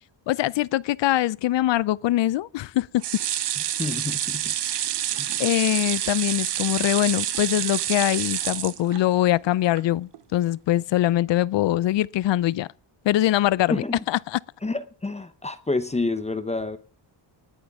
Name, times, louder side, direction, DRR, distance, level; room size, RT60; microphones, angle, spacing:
voice 1, 0.3-3.0 4.7-4.8 5.4-12.7 13.0-14.4, left 14 dB, 65° left, 0.6 m, -23 dB
sound 1, 3.0-9.3 9.7-9.8 10.1-10.2, right 11 dB, 60° right, 0.9 m, -28 dB
voice 2, 3.8-4.5 5.1-5.4 13.7-14.0 14.6-16.8, left 3 dB, 15° left, 0.7 m, -29 dB
20.0 x 9.4 x 3.6 m
wide cardioid pair, 175°, 47 cm